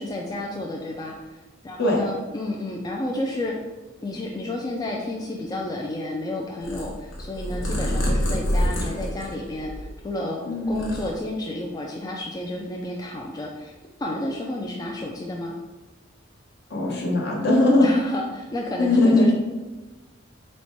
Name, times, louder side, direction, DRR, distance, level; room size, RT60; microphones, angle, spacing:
voice 1, 0.0-3.6 4.0-13.7 14.0-15.5 17.8-19.3, left 1 dB, 20° left, -1 dB, 0.3 m, -31 dB
Purr, 6.6-10.2 10.5-11.6, equal, 90° left, 1.0 m, -27 dB
voice 2, 10.5-10.8 16.7-17.9 18.8-19.3, left 2 dB, 60° left, -2 dB, 1.0 m, -19 dB
4.1 x 2.2 x 4.4 m, 1.2 s
head